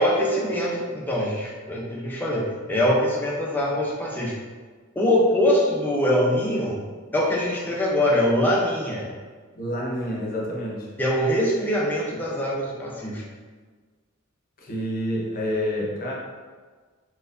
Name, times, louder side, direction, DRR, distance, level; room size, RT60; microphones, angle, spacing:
voice 1, 0.0-4.3 5.0-6.8 7.1-9.1 11.0-13.2, equal, 10° left, -4 dB, 0.5 m, -23 dB
voice 2, 9.5-10.9 14.6-16.1, equal, 45° left, -3 dB, 0.7 m, -28 dB
4.3 x 2.2 x 2.5 m, 1.5 s
head